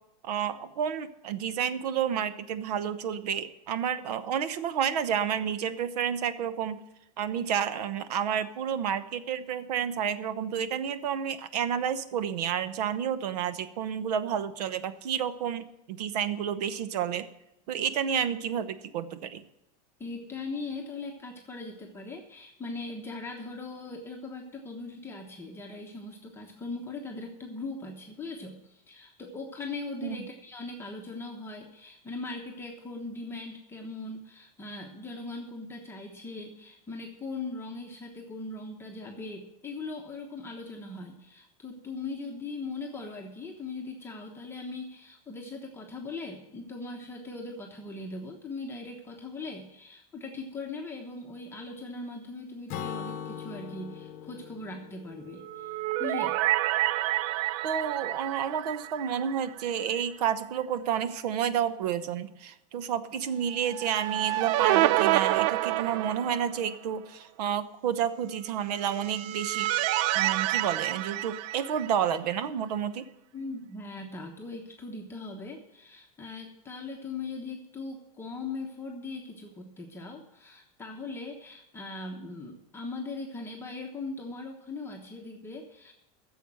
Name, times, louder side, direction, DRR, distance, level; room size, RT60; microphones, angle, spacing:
voice 1, 0.2-6.8 7.2-17.3 17.7-19.4 30.0-30.2 57.6-69.7 70.1-73.1, right 8 dB, 85° right, 13 dB, 1.0 m, -30 dB
voice 2, 20.0-56.4 73.3-85.9, left 3 dB, 10° left, 0 dB, 1.1 m, -40 dB
Acoustic guitar / Strum, 52.7-56.3, left 8 dB, 45° left, 0.9 m, -41 dB
sound 1, 55.4-59.7 60.0-60.1 63.6-66.7 68.8-72.2, right 16 dB, 50° right, 0.4 m, -28 dB
10.5 x 7.1 x 7.7 m, 0.89 s
supercardioid pair, 145°, 20 cm